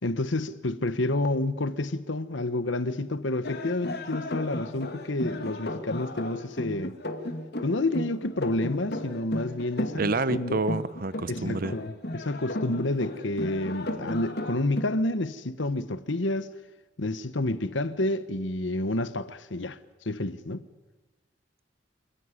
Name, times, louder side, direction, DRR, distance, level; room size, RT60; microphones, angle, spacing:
voice 1, 0.0-7.0 7.6-10.0 10.3-10.6 11.3-16.5 17.0-19.8 20.0-20.6, left 2 dB, 75° left, 1.1 m, -29 dB
sound 1, 3.4-14.8, left 1 dB, 60° left, 2.4 m, -35 dB
voice 2, 10.0-11.7, right 3 dB, 50° right, 0.8 m, -28 dB
28.0 x 15.5 x 9.8 m
head